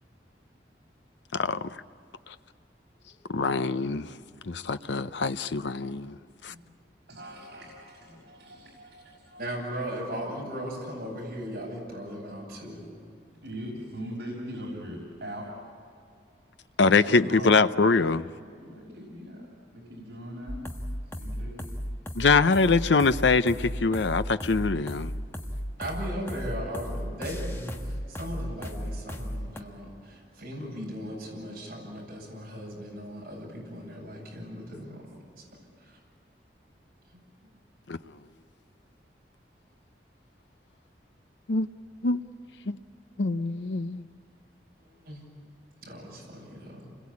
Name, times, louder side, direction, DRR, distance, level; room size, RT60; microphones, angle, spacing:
voice 1, 1.3-1.8 2.3-2.4 3.3-4.1 4.4-6.2 6.4-6.5 16.8-18.3 22.1-25.1 37.9-38.0 41.5-41.7 42.0-42.2 42.7-42.8 43.2-44.1, left 4 dB, 80° left, 0.7 m, -24 dB
voice 2, 7.1-9.5 13.4-15.5 16.9-17.7 18.5-20.6 21.1-21.6, equal, 70° right, 5.9 m, -41 dB
voice 3, 9.4-12.9 25.8-35.1 35.8-36.0 37.1-37.6 44.8-45.2 45.8-46.9, equal, 50° right, 7.9 m, -38 dB
sound 1, 20.5-29.6, equal, 15° left, 1.3 m, -35 dB
29.5 x 22.0 x 8.6 m
head